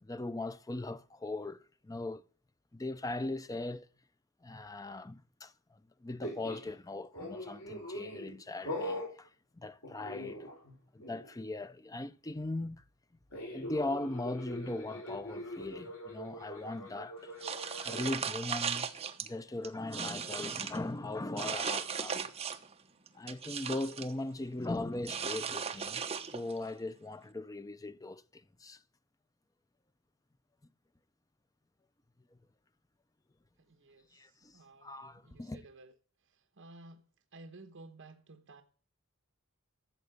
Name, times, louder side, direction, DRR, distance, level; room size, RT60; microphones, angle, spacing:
voice 1, 0.0-2.2 2.7-3.9 4.4-10.5 10.9-12.8 13.5-17.3 17.8-22.2 23.1-26.0 26.3-28.8 34.1-35.7, left 2 dB, 15° left, 0.5 m, -39 dB
sound 1, 6.2-6.7 7.1-8.3 8.7-9.1 9.8-10.7 11.0-11.3 13.3-18.2, equal, 75° left, 5.9 m, -42 dB
sound 2, 17.4-19.3 19.6-20.8 21.4-22.7 23.1-24.1 25.0-26.6, right 6 dB, 30° right, 1.0 m, -37 dB
voice 2, 34.5-34.9 35.3-35.9 36.6-37.0 37.3-38.6, right 2 dB, 60° right, 1.1 m, -53 dB
13.5 x 7.6 x 8.1 m
head